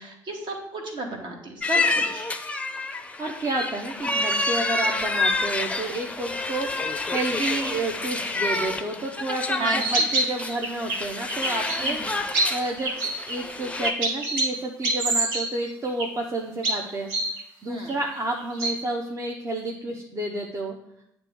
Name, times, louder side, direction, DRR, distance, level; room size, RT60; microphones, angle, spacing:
voice 1, 0.0-2.3 9.5-10.1 11.8-12.2 17.7-17.9, right 2 dB, 50° right, 1 dB, 1.4 m, -33 dB
sound 1, 1.6-13.9, left 2 dB, 10° left, 0.5 m, -28 dB
voice 2, 3.2-12.2 12.5-17.1 17.6-20.8, right 2 dB, 30° right, 0 dB, 0.8 m, -30 dB
sound 2, 9.8-11.0 11.3-11.9 12.3-13.3 13.8-14.5 14.8-15.5 15.9-16.2 16.6-17.4 17.9-18.0 18.4-18.7, right 2 dB, 70° right, 1.2 m, -25 dB
8.8 x 3.0 x 3.5 m, 0.75 s
hypercardioid pair, 55°, 10 cm